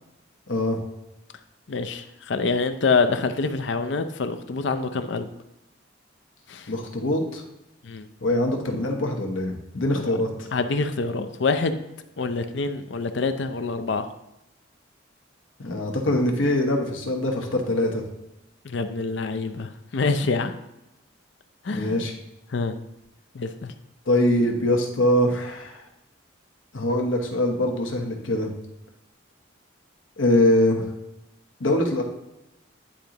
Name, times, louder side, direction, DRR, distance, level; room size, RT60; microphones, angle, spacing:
voice 1, 0.5-0.8 6.7-7.4 8.2-10.5 15.6-18.0 21.7-22.1 24.1-25.8 26.7-28.5 30.2-30.9 31.6-32.0, left 1 dB, 80° left, 2 dB, 1.1 m, -23 dB
voice 2, 1.7-5.3 6.5-6.7 7.8-8.1 9.9-10.1 10.5-11.8 12.2-14.1 18.6-20.5 21.6-22.0 22.5-22.8 23.3-23.7, left 4 dB, 65° left, 10 dB, 0.5 m, -26 dB
10.0 x 3.8 x 2.9 m, 0.91 s
head